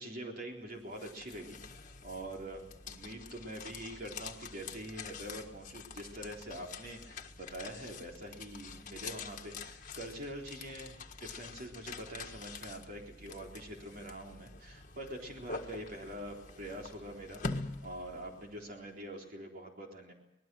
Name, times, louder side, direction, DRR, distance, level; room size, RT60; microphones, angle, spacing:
voice 1, 0.0-1.6 2.0-20.1, right 1 dB, 50° right, 1 dB, 3.9 m, -45 dB
sound 1, 0.7-18.7, left 4 dB, 45° left, 1.6 m, -46 dB
25.5 x 20.0 x 6.4 m, 0.92 s
head